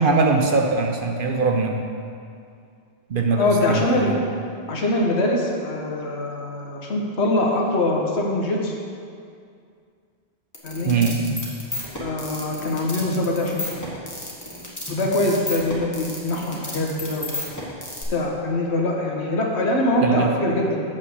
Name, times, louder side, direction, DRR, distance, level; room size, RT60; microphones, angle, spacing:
voice 1, 0.0-1.9 3.1-4.2 10.8-11.2 20.0-20.3, right 4 dB, 55° right, 3 dB, 0.8 m, -21 dB
voice 2, 3.4-4.1 4.7-8.7 10.6-10.9 12.0-13.6 14.9-17.4 18.1-20.8, left 1 dB, 75° left, 0 dB, 1.4 m, -23 dB
sound 1, 10.5-18.0, left 1 dB, 15° left, 1.3 m, -32 dB
7.3 x 5.5 x 6.5 m, 2.3 s
omnidirectional pair, 1.2 m